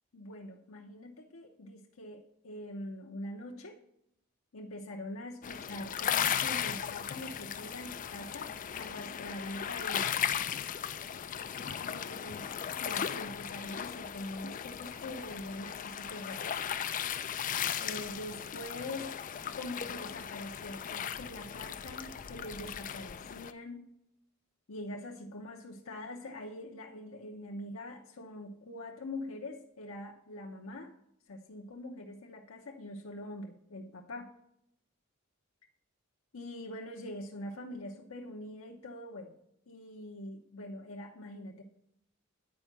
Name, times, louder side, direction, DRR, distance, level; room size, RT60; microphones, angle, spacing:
voice 1, 0.1-3.8 4.5-10.1 11.8-12.4 12.7-16.5 17.8-19.1 19.5-23.9 24.7-30.9 31.3-34.3 36.3-39.4 39.7-41.6, left 1 dB, 85° left, 1 dB, 0.8 m, -44 dB
sound 1, 5.4-23.5, left 8 dB, 40° left, 0.4 m, -37 dB
9.6 x 4.5 x 6.0 m, 0.80 s
head